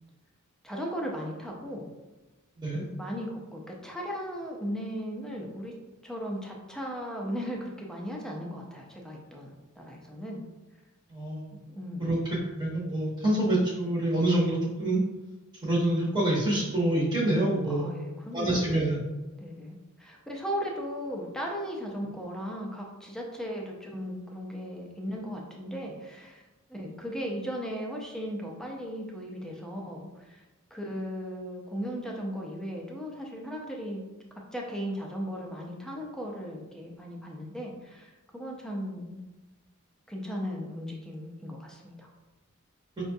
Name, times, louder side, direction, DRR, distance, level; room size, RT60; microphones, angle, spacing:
voice 1, 0.6-1.9 2.7-5.7 6.0-10.4 11.7-12.1 17.7-18.8 19.4-26.4 26.7-30.4 30.7-34.0 34.5-39.2 40.1-42.1, equal, 5° left, -1 dB, 0.5 m, -37 dB
voice 2, 11.1-11.6 12.0-12.2 12.5-15.0 15.6-17.9 18.3-19.0, right 1 dB, 20° right, -6 dB, 0.8 m, -26 dB
4.8 x 2.2 x 2.6 m, 1.1 s
head